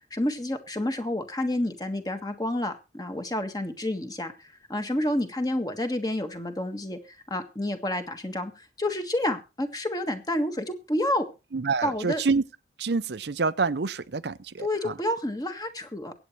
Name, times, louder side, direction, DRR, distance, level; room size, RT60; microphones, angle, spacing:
voice 1, 0.1-7.0 7.3-11.3 11.8-12.2 14.6-16.1, left 1 dB, 20° left, 1.6 m, -29 dB
voice 2, 11.5-12.4 12.8-15.0, right 4 dB, 70° right, 0.6 m, -27 dB
23.0 x 8.9 x 3.2 m
head